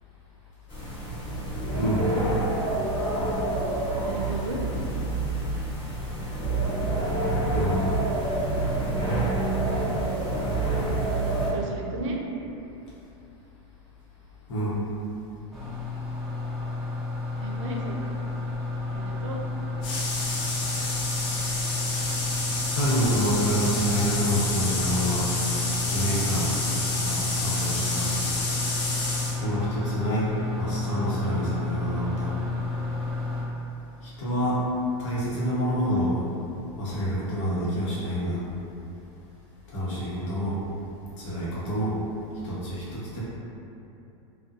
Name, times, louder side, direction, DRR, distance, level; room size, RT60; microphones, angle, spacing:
sound 1, 0.7-11.5, right 2 dB, 35° left, 1.1 m, -27 dB
voice 1, 1.7-2.0 7.5-7.8 14.5-14.8 22.7-25.3 25.9-28.1 29.4-30.3 30.6-32.3 34.0-34.6 35.0-36.1 36.8-38.4 39.7-40.5 41.2-41.9 42.4-43.2, equal, 75° left, -8 dB, 1.0 m, -27 dB
voice 2, 3.9-4.6 10.7-11.1 11.5-12.2 17.4-18.1 18.9-19.4, right 2 dB, 80° right, 0 dB, 0.5 m, -35 dB
sound 2, 15.5-33.4, left 3 dB, ahead, 0.5 m, -31 dB
sound 3, 19.8-29.4, left 2 dB, 55° left, 0.6 m, -29 dB
2.6 x 2.2 x 2.4 m, 2.8 s
supercardioid pair, 130°, 16 cm